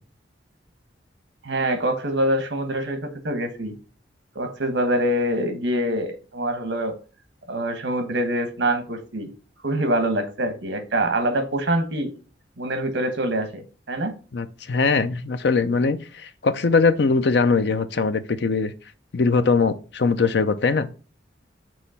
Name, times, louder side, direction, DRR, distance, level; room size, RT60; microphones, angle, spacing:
voice 1, 1.4-3.7 4.3-6.9 7.5-9.3 9.6-12.1 12.6-14.2, right 1 dB, 80° right, 1.2 m, -25 dB
voice 2, 14.3-18.7 19.1-20.9, left 4 dB, 70° left, 0.6 m, -21 dB
6.3 x 3.0 x 5.5 m
head